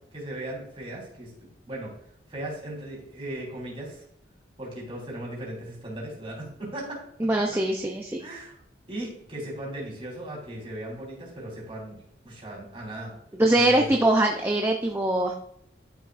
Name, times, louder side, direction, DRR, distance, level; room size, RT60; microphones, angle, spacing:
voice 1, 0.0-1.9 2.3-4.0 4.6-7.0 7.3-7.6 8.2-8.6 8.9-13.1 13.5-13.9, right 1 dB, 30° right, -3 dB, 4.0 m, -37 dB
voice 2, 7.2-8.2 13.4-15.3, right 1 dB, 15° right, 1 dB, 0.6 m, -22 dB
12.0 x 7.3 x 2.6 m, 0.68 s
head